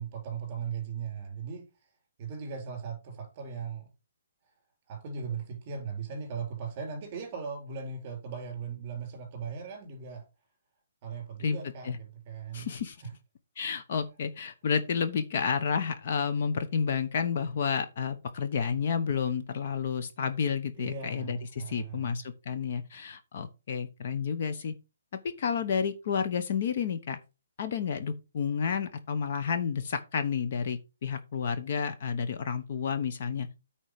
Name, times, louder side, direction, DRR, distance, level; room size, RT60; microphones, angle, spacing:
voice 1, 0.0-1.7 2.2-3.9 4.9-10.3 11.0-12.7 13.0-13.1 13.6-13.7 20.7-22.1, right 6 dB, 25° right, 4.1 m, -38 dB
voice 2, 12.5-13.0 13.6-24.7 25.4-27.2 27.6-33.5, left 6 dB, 40° left, 0.9 m, -30 dB
9.1 x 4.4 x 5.1 m
hypercardioid pair, 165°, 0 cm